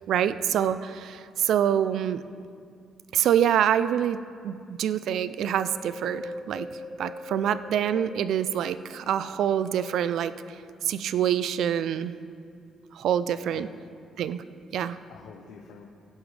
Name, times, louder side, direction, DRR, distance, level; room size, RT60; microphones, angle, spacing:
voice 1, 0.0-2.2 3.1-4.2 4.4-6.7 7.0-10.3 10.8-12.2 12.9-13.7 14.2-14.4 14.7-15.0, right 9 dB, 75° right, 14 dB, 0.4 m, -26 dB
Wind, 5.5-9.1 9.6-10.9 11.4-11.5, left 1 dB, 15° left, 0.5 m, -42 dB
voice 2, 13.4-13.7 14.8-15.9, left 6 dB, 85° left, 2 dB, 0.9 m, -48 dB
16.0 x 11.0 x 3.3 m, 2.4 s
cardioid pair, 90°, 0 cm